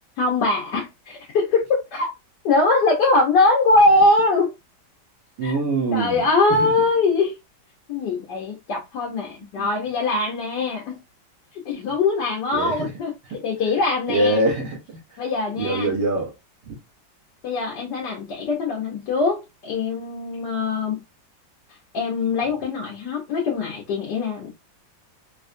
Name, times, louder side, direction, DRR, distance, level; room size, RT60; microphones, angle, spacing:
voice 1, 0.2-2.1 2.4-4.5 5.4-5.6 5.9-7.3 7.9-11.0 11.5-13.1 13.4-14.5 15.2-15.9 17.4-21.0 21.9-24.5, left 3 dB, 65° left, 1.4 m, -22 dB
voice 2, 5.4-6.3 6.6-6.7 9.6-9.7 12.5-12.9 14.1-15.0 15.6-16.3 16.7-16.8, right 2 dB, 65° right, 1.8 m, -23 dB
4.3 x 2.3 x 2.5 m
omnidirectional pair, 2.1 m